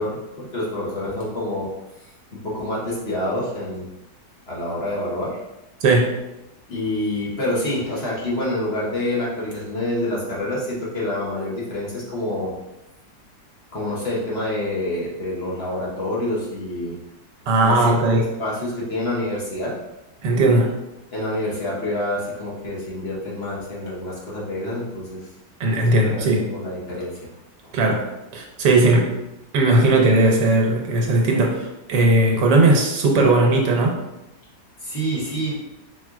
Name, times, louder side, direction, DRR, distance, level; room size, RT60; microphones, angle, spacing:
voice 1, 0.0-1.7 2.0-3.8 4.5-5.4 6.7-12.5 13.7-17.0 17.6-19.7 21.1-25.3 26.1-27.1 27.6-27.7 34.8-35.5, left 1 dB, 40° left, -5 dB, 1.3 m, -27 dB
voice 2, 5.8-6.2 17.5-18.2 20.2-20.7 25.6-26.5 27.7-29.2 29.5-34.0, right 2 dB, 80° right, 0 dB, 1.4 m, -18 dB
4.9 x 3.7 x 2.4 m, 0.92 s
omnidirectional pair, 1.9 m